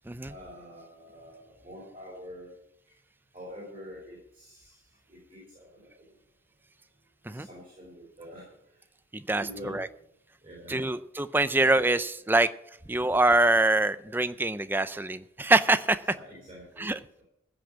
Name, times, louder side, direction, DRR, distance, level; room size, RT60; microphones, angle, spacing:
voice 1, 0.3-2.6 3.3-4.8 5.1-5.9 7.2-8.5 9.3-9.8 10.4-10.8 16.1-17.2, equal, 25° right, -5 dB, 4.9 m, -46 dB
voice 2, 9.1-9.9 10.7-12.5 12.9-16.0 16.8-17.0, right 2 dB, 10° right, 13 dB, 0.4 m, -24 dB
15.5 x 6.1 x 8.5 m, 0.75 s
head